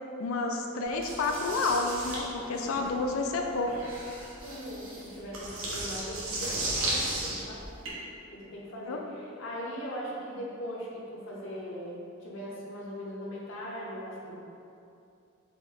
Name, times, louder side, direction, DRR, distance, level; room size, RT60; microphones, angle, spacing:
voice 1, 0.2-3.7 8.9-9.0, left 3 dB, 85° left, 2 dB, 0.4 m, -30 dB
sound 1, 1.0-7.9, right 2 dB, 90° right, 1.0 m, -35 dB
voice 2, 2.3-3.0 4.4-7.6 8.3-14.4, equal, 65° left, -4 dB, 0.8 m, -40 dB
4.7 x 2.0 x 4.0 m, 2.6 s
head